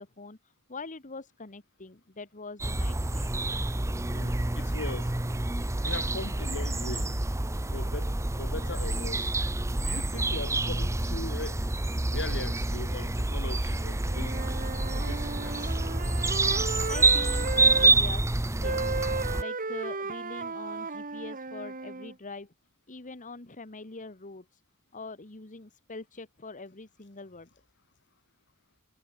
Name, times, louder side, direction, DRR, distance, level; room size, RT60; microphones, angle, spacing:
voice 1, 0.0-3.4 16.7-18.3 18.5-18.8 19.4-22.5 22.9-24.6 24.9-27.5, left 3 dB, 35° left, 1.5 m, -43 dB
sound 1, 2.6-19.4, right 2 dB, 15° right, 0.8 m, -28 dB
voice 2, 4.1-5.1 5.8-7.1 7.7-9.3 9.8-11.6 12.1-14.4 14.9-15.7, left 2 dB, 55° left, 3.3 m, -40 dB
Wind instrument woodwind instrument, 14.0-17.9 18.6-22.1, right 3 dB, 40° right, 2.4 m, -35 dB
head